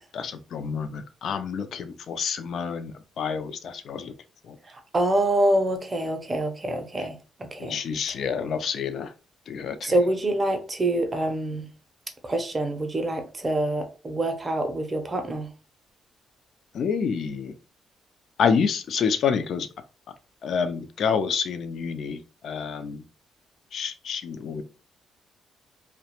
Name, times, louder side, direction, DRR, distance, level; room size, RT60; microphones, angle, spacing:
voice 1, 0.1-2.9 3.2-4.1 7.6-9.1 9.5-9.9 16.7-17.5 18.4-19.7 20.4-22.2 22.4-23.0 23.7-24.6, left 6 dB, 65° left, 0.3 m, -28 dB
voice 2, 4.7-7.8 8.1-8.2 9.8-11.7 12.2-15.5, right 1 dB, 30° right, 0.5 m, -26 dB
2.3 x 2.1 x 2.8 m
cardioid pair, 90°, 0 cm